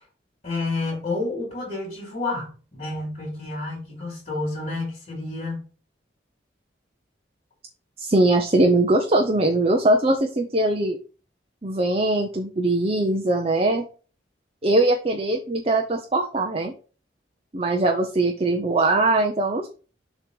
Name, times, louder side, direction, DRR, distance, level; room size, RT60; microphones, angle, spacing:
voice 1, 0.4-5.7, left 2 dB, 35° left, 3.5 m, -30 dB
voice 2, 8.0-11.0 11.6-13.8 14.6-16.7 17.5-19.7, right 2 dB, 30° right, 0.7 m, -21 dB
7.0 x 3.1 x 5.2 m
head